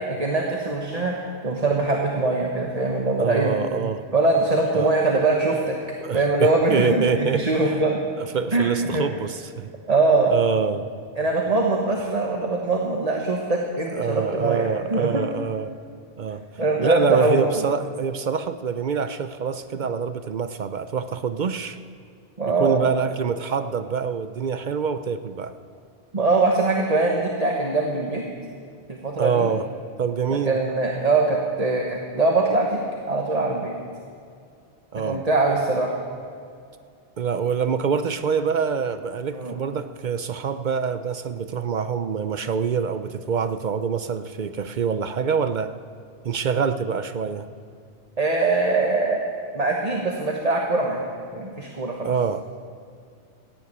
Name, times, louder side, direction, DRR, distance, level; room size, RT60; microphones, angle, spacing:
voice 1, 0.1-1.2 1.4-3.7 4.1-5.8 6.1-8.0 8.5-9.1 9.9-10.3 11.2-15.2 16.6-17.5 22.4-22.8 26.1-28.3 28.9-29.5 30.3-32.8 33.0-33.7 35.0-35.9 39.3-39.5 48.2-49.2 49.5-51.0 51.3-52.1, right 3 dB, 40° right, 0 dB, 1.3 m, -22 dB
voice 2, 3.2-4.0 4.7-4.9 6.0-7.8 8.2-9.7 10.3-10.9 13.9-15.7 16.2-16.4 16.8-21.8 22.5-25.5 29.2-29.7 30.0-30.6 34.9-35.2 37.2-45.7 46.2-47.5 52.0-52.4, right 6 dB, 55° right, 11 dB, 0.7 m, -25 dB
15.5 x 9.7 x 8.7 m, 2.3 s
omnidirectional pair, 1.1 m